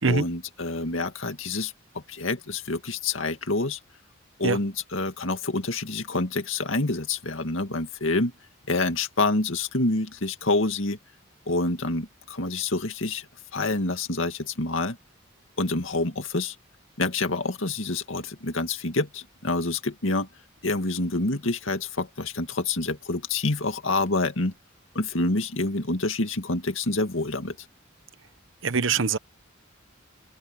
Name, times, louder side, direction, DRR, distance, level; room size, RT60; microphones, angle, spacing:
voice 1, 0.1-3.8 4.4-8.3 8.7-11.0 11.5-13.3 13.5-15.0 15.6-16.6 17.0-20.3 20.6-24.5 24.9-27.6, left 2 dB, 75° left, 2.2 m, -27 dB
voice 2, 28.6-29.2, right 4 dB, 65° right, 1.0 m, -23 dB
head